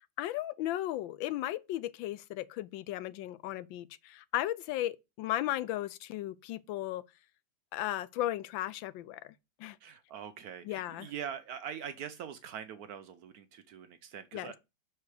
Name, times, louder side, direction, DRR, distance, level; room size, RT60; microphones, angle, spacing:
voice 1, 0.2-7.0 7.7-9.3 9.6-9.8 10.7-11.1 14.3-14.5, left 14 dB, 90° left, 1.3 m, -35 dB
voice 2, 9.8-14.6, right 8 dB, 65° right, 1.0 m, -43 dB
5.9 x 4.4 x 4.8 m
omnidirectional pair, 2.0 m